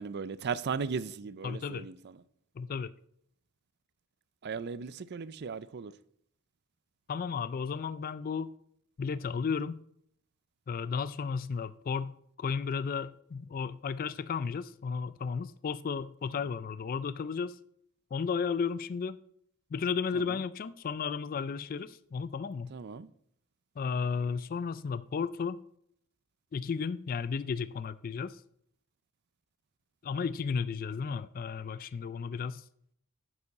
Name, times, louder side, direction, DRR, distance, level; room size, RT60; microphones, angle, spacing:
voice 1, 0.0-2.2 4.4-5.9 20.1-20.4 22.7-23.1, right 5 dB, 50° right, 0.5 m, -37 dB
voice 2, 1.4-1.9 2.6-2.9 7.1-8.5 9.0-9.8 10.7-17.6 18.1-19.2 19.7-22.7 23.8-25.6 26.5-28.4 30.0-32.6, left 5 dB, 40° left, 0.3 m, -34 dB
9.8 x 7.1 x 4.1 m
head